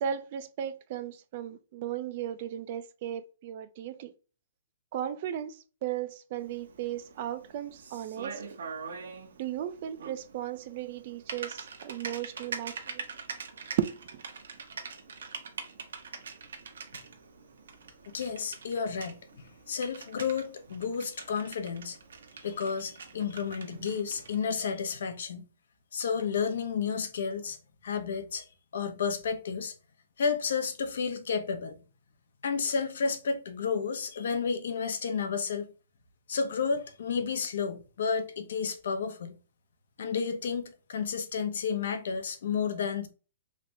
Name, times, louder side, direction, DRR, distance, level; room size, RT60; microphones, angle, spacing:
voice 1, 0.0-4.1 4.9-8.4 9.4-13.0 13.8-14.2, right 10 dB, 35° right, 0.4 m, -35 dB
Typing, 6.4-24.4, right 5 dB, 85° right, 0.9 m, -44 dB
voice 2, 18.1-22.0 22.4-25.4 25.9-27.6 27.8-28.4 28.7-29.7 30.2-31.8 32.4-35.7 36.3-39.4 40.0-43.1, left 6 dB, 65° left, 0.7 m, -31 dB
3.3 x 3.2 x 2.6 m
hypercardioid pair, 175°, 0 cm